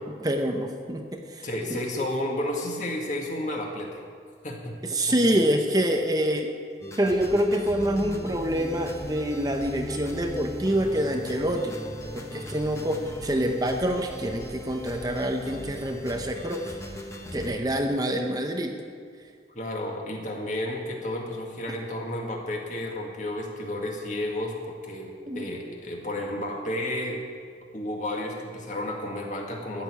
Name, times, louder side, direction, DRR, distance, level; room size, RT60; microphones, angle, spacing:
voice 1, 0.2-1.5 4.8-6.5 7.0-11.8 12.1-16.8 17.3-18.8 25.3-25.4, equal, 20° right, 4 dB, 0.8 m, -26 dB
voice 2, 1.4-4.0 4.4-4.7 5.1-5.4 19.6-27.2 27.7-29.8, left 1 dB, 45° left, 0 dB, 2.0 m, -32 dB
sound 1, 6.8-17.6, left 1 dB, 15° left, 1.2 m, -39 dB
13.5 x 6.7 x 9.9 m, 2.1 s
head